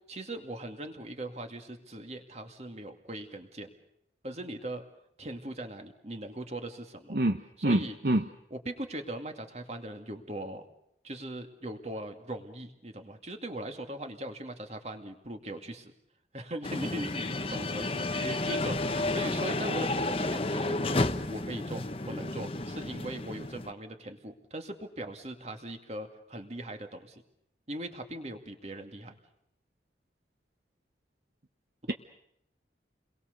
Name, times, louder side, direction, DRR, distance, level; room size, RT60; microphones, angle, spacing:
voice 1, 0.1-3.7 4.2-4.8 5.2-7.2 7.6-8.0 8.5-10.6 11.0-15.9 16.3-27.2 27.7-29.2, right 1 dB, 40° right, 6 dB, 2.4 m, -40 dB
voice 2, 7.6-8.2, right 1 dB, 55° right, 7 dB, 1.0 m, -25 dB
sound 1, 16.6-23.7, left 2 dB, 30° left, 1.0 m, -31 dB
29.5 x 22.0 x 6.8 m, 0.74 s
head